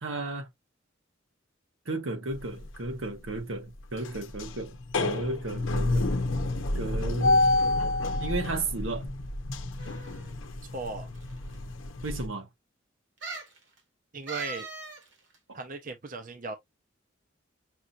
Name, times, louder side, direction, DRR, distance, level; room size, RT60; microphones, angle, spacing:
voice 1, 0.0-0.5 1.9-6.1 6.7-7.5 8.2-9.1 12.0-12.5, right 2 dB, 90° right, 1.3 m, -34 dB
sound 1, 2.3-2.9 3.3-3.4 3.8-12.3, left 2 dB, 85° left, 0.7 m, -29 dB
sound 2, 9.8-10.3 11.1-11.2 11.5-11.6 13.2-13.6 14.3-15.0 15.3-15.4, right 3 dB, 70° right, 1.8 m, -39 dB
voice 2, 10.7-11.1 14.1-14.7 15.5-16.5, right 3 dB, 45° right, 0.7 m, -37 dB
6.0 x 2.7 x 2.4 m
head